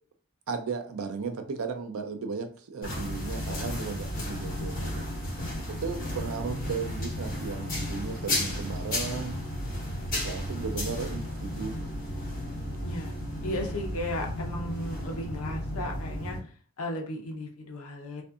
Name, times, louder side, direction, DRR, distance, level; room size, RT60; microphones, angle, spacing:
voice 1, 0.5-5.0 5.7-9.4 10.1-11.9, right 5 dB, 70° right, 0.5 m, -35 dB
sound 1, 2.8-16.4, left 1 dB, 45° left, 1.1 m, -33 dB
voice 2, 12.8-13.1 13.4-18.2, left 1 dB, 80° left, 0.7 m, -35 dB
2.6 x 2.5 x 2.3 m
head